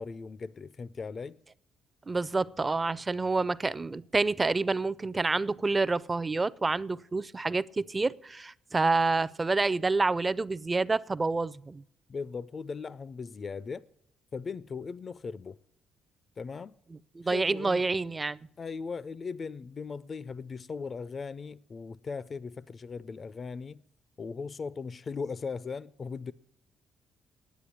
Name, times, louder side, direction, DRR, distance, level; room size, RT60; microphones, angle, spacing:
voice 1, 0.0-1.4 12.1-13.9 14.3-15.6 16.4-16.8 17.3-17.8 18.6-23.8 24.2-26.3, left 5 dB, 40° left, 0.3 m, -38 dB
voice 2, 2.1-11.8 17.2-18.4, right 3 dB, 25° right, 0.4 m, -28 dB
10.0 x 8.0 x 8.3 m
cardioid pair, 90°, 0 cm